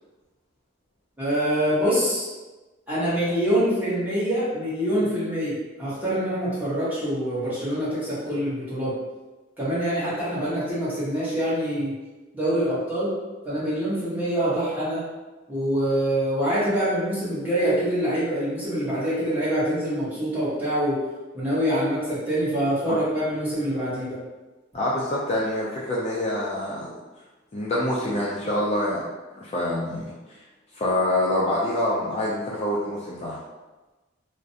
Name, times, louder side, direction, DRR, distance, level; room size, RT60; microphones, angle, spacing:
voice 1, 1.2-2.3 2.9-8.9 9.6-11.9 12.3-13.1 13.4-15.0 15.5-21.0 21.3-24.2, equal, 10° right, -11 dB, 1.0 m, -25 dB
voice 2, 24.7-26.9 27.5-29.1 29.4-30.4 30.7-33.4, left 1 dB, 35° left, -5 dB, 0.3 m, -26 dB
2.4 x 2.1 x 2.6 m, 1.2 s
head